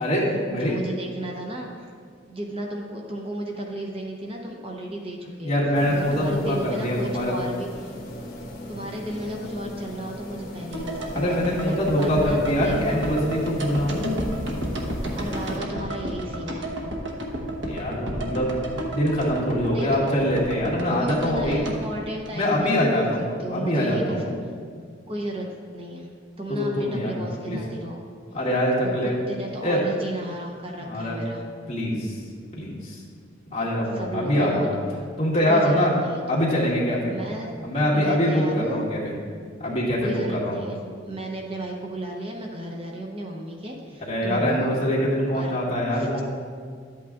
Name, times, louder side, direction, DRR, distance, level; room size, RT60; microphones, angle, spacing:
voice 1, 0.0-0.8 5.4-7.3 11.1-14.2 17.7-18.6 18.9-21.6 22.3-24.4 26.5-27.6 28.3-29.2 29.6-29.8 30.8-31.2 31.7-32.2 32.5-33.0 33.5-34.8 35.2-35.9 36.3-37.1 37.6-39.1 39.6-40.6 44.0-46.3, equal, 35° left, -6 dB, 2.1 m, -24 dB
voice 2, 0.5-1.9 2.3-5.5 5.9-7.9 8.7-13.2 15.1-16.7 19.7-20.1 20.9-24.4 25.1-26.1 26.4-28.0 28.8-31.5 33.9-34.8 35.5-36.4 37.1-37.5 37.9-38.9 40.0-44.7 45.3-45.5 45.9-46.2, right 1 dB, 30° right, 0 dB, 0.7 m, -34 dB
sound 1, 5.7-15.6, left 1 dB, 55° left, 1.3 m, -38 dB
sound 2, 10.7-22.9 23.2-23.3, right 1 dB, 75° right, 1.1 m, -32 dB
12.0 x 8.4 x 2.5 m, 2.1 s
head